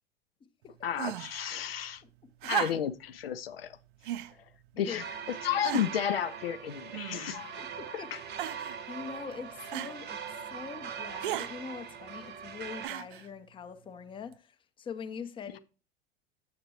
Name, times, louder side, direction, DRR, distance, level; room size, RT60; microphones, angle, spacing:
voice 1, 0.8-2.0 2.5-3.8 4.7-5.0 5.4-7.6 8.1-8.2, left 9 dB, 75° left, 0.5 m, -32 dB
sound 1, 1.0-1.4 2.4-3.1 4.0-4.3 5.1-5.2 5.6-6.1 6.9-7.5 8.4-8.8 9.7-10.0 11.2-11.5 12.8-13.3 14.3-14.4, right 13 dB, 60° right, 0.5 m, -35 dB
sound 2, 4.9-12.9, right 7 dB, 35° right, 0.8 m, -42 dB
voice 2, 7.6-8.1 8.9-15.6, left 6 dB, 15° left, 0.6 m, -43 dB
7.5 x 6.7 x 2.7 m
figure-of-eight pair, 80°, 29 cm